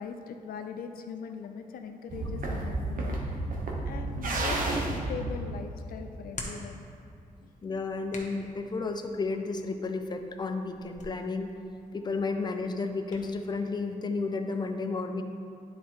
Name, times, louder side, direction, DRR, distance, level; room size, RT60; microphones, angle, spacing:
voice 1, 0.0-3.4 3.9-6.8 7.4-7.5, left 6 dB, 90° left, 6 dB, 0.5 m, -41 dB
sound 1, 2.1-6.3, right 2 dB, 70° right, 1.1 m, -32 dB
Hands, 4.9-13.3, left 2 dB, 55° left, 1.1 m, -48 dB
voice 2, 7.6-11.5 11.9-15.2, left 3 dB, 30° left, 5 dB, 0.6 m, -32 dB
9.9 x 4.0 x 4.7 m, 2.4 s
cardioid pair, 95°, 15 cm